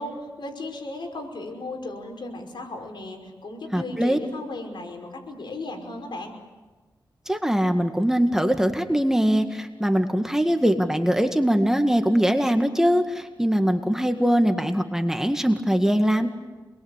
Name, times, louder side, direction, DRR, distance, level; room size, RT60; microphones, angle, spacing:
voice 1, 0.0-6.3, left 2 dB, 70° left, 2 dB, 5.5 m, -35 dB
voice 2, 3.7-4.2 7.3-16.3, equal, 5° right, 6 dB, 1.9 m, -22 dB
27.5 x 22.0 x 8.3 m, 1.3 s
cardioid pair, 75°, 8 cm